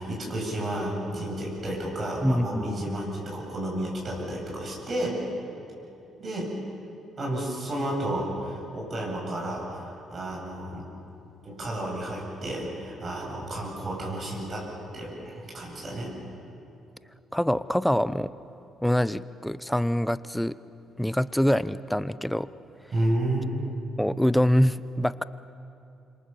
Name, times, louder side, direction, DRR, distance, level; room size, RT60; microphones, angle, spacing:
voice 1, 0.0-5.2 6.2-6.5 7.2-10.8 11.4-14.7 14.9-16.2 22.9-23.6, right 1 dB, 45° right, -2 dB, 8.0 m, -31 dB
voice 2, 2.2-2.9 17.3-18.3 18.8-20.6 21.0-22.5 24.0-25.2, equal, 5° left, 16 dB, 0.8 m, -25 dB
27.0 x 24.0 x 7.0 m, 2.7 s
hypercardioid pair, 50°, 0 cm